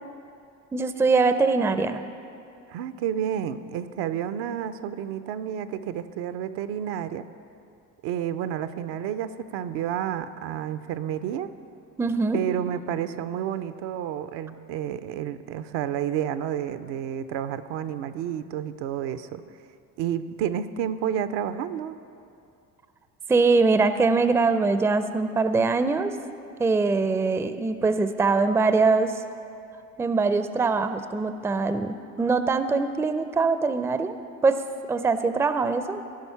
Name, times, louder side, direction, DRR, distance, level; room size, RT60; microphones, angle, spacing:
voice 1, 0.7-2.0 12.0-12.6 23.3-26.1 26.6-29.2 30.0-34.2 34.4-34.6 34.9-36.0, right 4 dB, 5° right, 10 dB, 0.4 m, -23 dB
voice 2, 2.7-7.3 8.0-11.5 12.3-19.4 20.0-22.0, right 9 dB, 70° right, 12 dB, 0.6 m, -30 dB
15.5 x 5.4 x 5.7 m, 2.5 s
hypercardioid pair, 65°, 45 cm